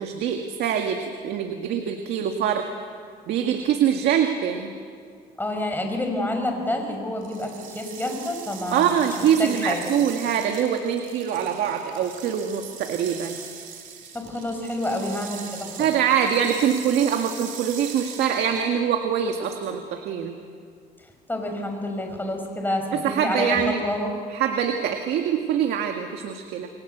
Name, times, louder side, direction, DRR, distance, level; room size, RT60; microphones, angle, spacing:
voice 1, 0.0-2.6 3.3-4.7 8.7-13.4 15.8-20.3 22.9-23.8 24.3-26.7, right 8 dB, 75° right, 4 dB, 2.0 m, -24 dB
voice 2, 5.4-9.1 9.4-9.9 14.1-15.9 21.3-23.6 23.8-24.1, left 1 dB, 10° left, 3 dB, 6.1 m, -28 dB
sound 1, 7.2-18.8, right 7 dB, 55° right, 3.6 m, -41 dB
29.0 x 23.0 x 8.1 m, 2.2 s
cardioid pair, 110°, 17 cm